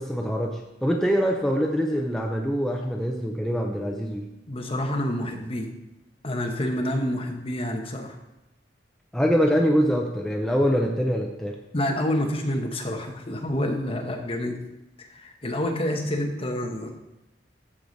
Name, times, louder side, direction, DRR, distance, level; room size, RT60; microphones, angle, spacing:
voice 1, 0.0-4.3 9.1-11.6, equal, 5° left, 0 dB, 0.6 m, -24 dB
voice 2, 4.5-5.7 6.2-8.2 11.7-14.6 15.0-17.0, left 1 dB, 30° left, 3 dB, 1.1 m, -28 dB
13.5 x 4.9 x 4.0 m, 0.96 s
head